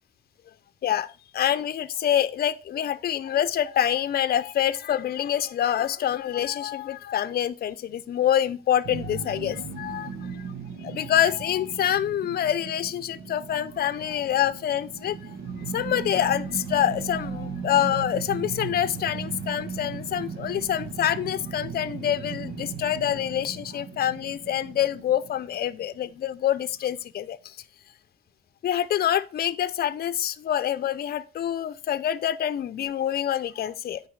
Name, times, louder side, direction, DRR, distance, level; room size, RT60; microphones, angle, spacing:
voice 1, 0.8-10.1 10.8-15.3 15.7-27.6 28.6-34.0, left 10 dB, 50° left, 0.6 m, -26 dB
sound 1, 8.8-26.0, right 5 dB, 75° right, 1.3 m, -37 dB
9.3 x 4.7 x 4.7 m
cardioid pair, 90°, 20 cm